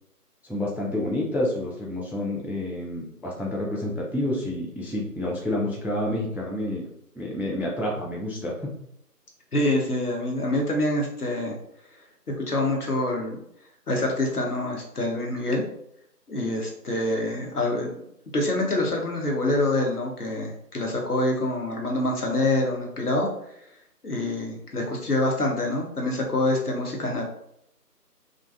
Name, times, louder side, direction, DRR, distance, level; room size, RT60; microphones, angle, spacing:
voice 1, 0.4-6.9 7.2-8.7, left 1 dB, 5° right, -2 dB, 0.4 m, -29 dB
voice 2, 9.5-11.6 12.5-13.4 13.9-15.6 16.3-17.9 18.3-23.3 24.0-27.2, left 1 dB, 65° left, 0 dB, 0.8 m, -26 dB
2.5 x 2.3 x 2.3 m, 0.75 s
figure-of-eight pair, 180°, 48 cm